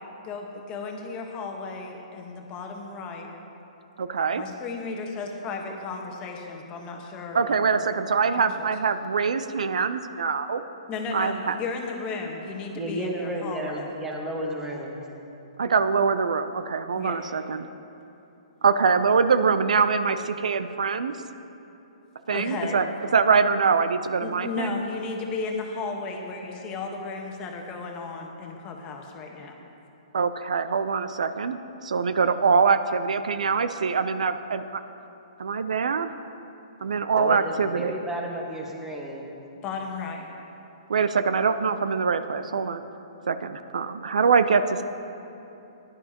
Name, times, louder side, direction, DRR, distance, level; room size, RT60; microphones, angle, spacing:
voice 1, 0.2-3.3 4.3-7.4 7.7-7.9 8.6-8.7 10.9-13.9 16.9-17.3 22.3-22.8 24.2-29.6 39.6-40.4, left 4 dB, 25° left, 2 dB, 1.2 m, -34 dB
voice 2, 4.0-4.4 7.3-10.6 11.1-11.6 15.6-17.7 18.6-21.2 22.3-22.9 23.1-24.8 30.1-34.8 35.4-36.1 36.8-37.9 40.9-42.8 43.3-44.8, right 5 dB, 80° right, 11 dB, 0.5 m, -24 dB
voice 3, 12.7-15.0 37.2-39.3, right 1 dB, 10° right, -1 dB, 1.4 m, -32 dB
16.0 x 11.0 x 2.9 m, 2.9 s
hypercardioid pair, 145°, 4 cm